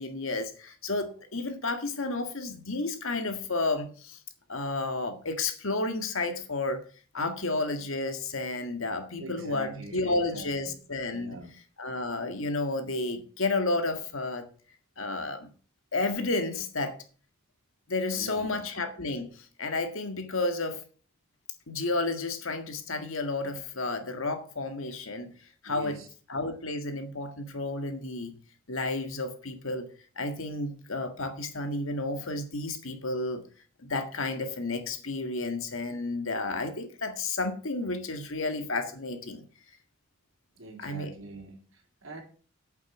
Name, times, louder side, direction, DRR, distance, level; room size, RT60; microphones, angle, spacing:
voice 1, 0.0-4.2 4.5-6.8 7.1-11.4 11.8-14.5 15.0-15.5 15.9-17.0 17.9-20.8 21.7-25.3 25.6-26.0 26.3-28.4 28.7-29.9 30.2-33.4 33.8-39.4 40.8-41.1, left 2 dB, 70° left, 8 dB, 1.8 m, -31 dB
voice 2, 9.2-10.7 11.1-11.5 18.1-18.7 25.6-26.1 40.6-42.2, right 2 dB, 65° right, 1 dB, 3.9 m, -43 dB
8.9 x 8.2 x 6.1 m, 0.40 s
head